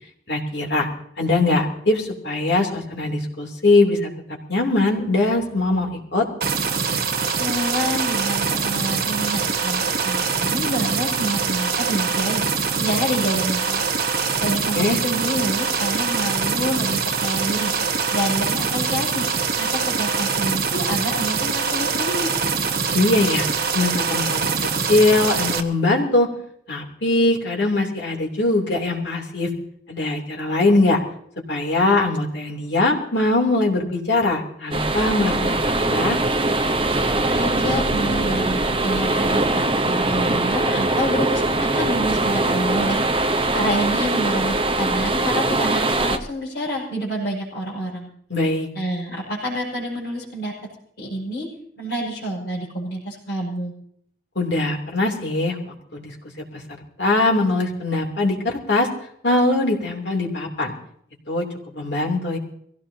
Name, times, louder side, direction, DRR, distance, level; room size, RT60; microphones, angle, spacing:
voice 1, 0.3-0.9 1.2-4.1 4.5-6.3 14.7-15.0 22.9-23.5 23.7-24.5 24.9-26.3 26.7-29.5 29.9-31.0 31.5-35.6 35.9-36.2 48.3-48.7 54.3-55.6 55.9-56.1 57.0-58.9 59.2-60.7 61.3-61.4 61.7-62.4, left 2 dB, 80° left, 0 dB, 3.0 m, -21 dB
sound 1, 6.4-25.6, right 5 dB, 55° right, 1.2 m, -23 dB
voice 2, 7.4-12.4 12.8-13.9 14.4-19.3 19.5-22.3 37.3-43.0 43.5-48.1 48.7-50.5 51.0-51.5 51.8-53.7, equal, 60° left, -6 dB, 5.8 m, -27 dB
sound 2, 34.7-46.2, right 2 dB, 30° right, 0.9 m, -22 dB
23.0 x 16.5 x 2.8 m, 0.67 s
head